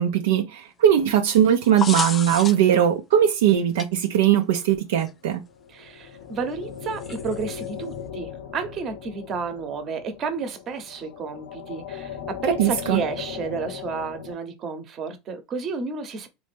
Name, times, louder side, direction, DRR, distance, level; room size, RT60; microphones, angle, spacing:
voice 1, 0.0-5.4 12.6-13.0, right 10 dB, 85° right, 0.5 m, -20 dB
sound 1, 1.5-2.8 3.8-3.9 5.0-5.1 7.0-7.7, left 6 dB, 30° left, 0.4 m, -31 dB
sound 2, 5.5-14.3, left 8 dB, 80° left, 0.5 m, -37 dB
voice 2, 5.7-16.3, right 5 dB, 45° right, 0.9 m, -31 dB
3.1 x 2.5 x 3.4 m
supercardioid pair, 100°, 0 cm